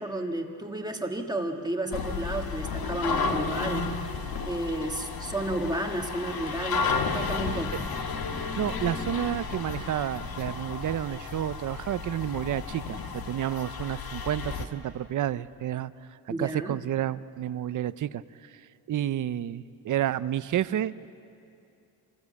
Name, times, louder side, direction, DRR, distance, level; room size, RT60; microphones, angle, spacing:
voice 1, 0.0-3.9 4.4-6.9 7.1-7.9 16.3-16.8, right 1 dB, 10° right, 3 dB, 1.4 m, -32 dB
sound 1, 1.9-14.6, left 4 dB, 65° left, 1.7 m, -32 dB
voice 2, 8.6-21.1, right 11 dB, 55° right, 16 dB, 0.6 m, -30 dB
27.5 x 19.5 x 8.4 m, 2.6 s
wide cardioid pair, 160°, 38 cm